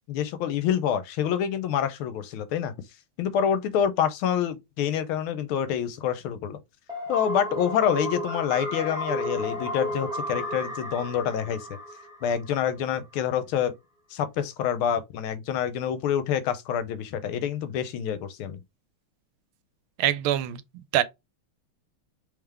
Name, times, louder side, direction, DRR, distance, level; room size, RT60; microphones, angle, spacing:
voice 1, 0.1-2.7 3.2-6.6 7.1-11.7 12.2-13.7 14.1-18.6, left 9 dB, 85° left, 1.5 m, -27 dB
sound 1, 6.9-12.7, left 1 dB, ahead, 1.6 m, -33 dB
voice 2, 20.0-20.6 20.9-21.0, right 12 dB, 80° right, 1.4 m, -23 dB
3.6 x 3.4 x 3.3 m
omnidirectional pair, 2.3 m